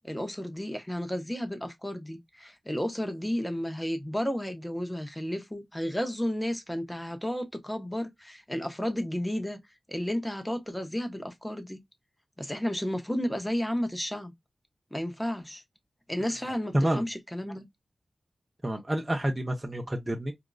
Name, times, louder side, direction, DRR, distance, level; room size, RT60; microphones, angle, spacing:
voice 1, 0.0-9.6 9.9-11.8 12.4-14.3 14.9-15.6 16.1-17.7, equal, 10° left, 0.9 m, -32 dB
voice 2, 16.7-17.1 18.6-20.3, right 1 dB, 20° right, 0.8 m, -28 dB
4.4 x 2.5 x 2.2 m
wide cardioid pair, 110°, 0 cm